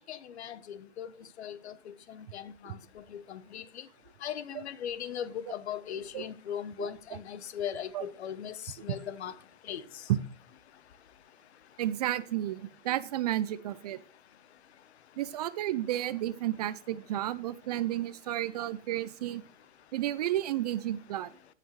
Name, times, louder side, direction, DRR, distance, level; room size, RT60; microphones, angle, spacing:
voice 1, 0.1-1.1 1.4-1.7 2.3-2.5 3.3-3.6 4.2-8.5 8.8-9.3 9.7-9.8, left 9 dB, 65° left, 1.0 m, -38 dB
voice 2, 6.8-7.2 7.9-8.0 8.9-9.0 10.1-10.2 11.8-14.0 15.2-19.4 19.9-21.3, right 13 dB, 35° right, 0.5 m, -32 dB
17.0 x 5.9 x 3.1 m
hypercardioid pair, 140°, 36 cm